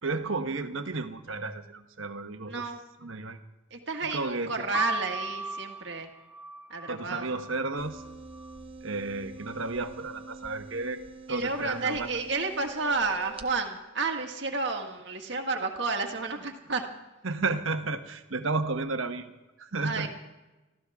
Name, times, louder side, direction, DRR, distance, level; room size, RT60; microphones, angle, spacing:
voice 1, 0.0-2.7 3.0-3.4 4.1-4.5 6.9-8.0 8.8-11.0 11.3-12.1 17.2-19.3 19.6-20.1, right 3 dB, 75° right, 7 dB, 1.2 m, -32 dB
voice 2, 2.5-2.8 3.7-6.1 6.7-7.3 11.3-16.8 19.8-20.1, right 3 dB, 55° right, 3 dB, 1.9 m, -31 dB
sound 1, 4.7-8.6 9.4-10.1, right 2 dB, 5° right, 0.5 m, -37 dB
sound 2, 7.8-13.5, right 3 dB, 25° right, 0.9 m, -46 dB
25.0 x 15.0 x 3.6 m, 1.1 s
head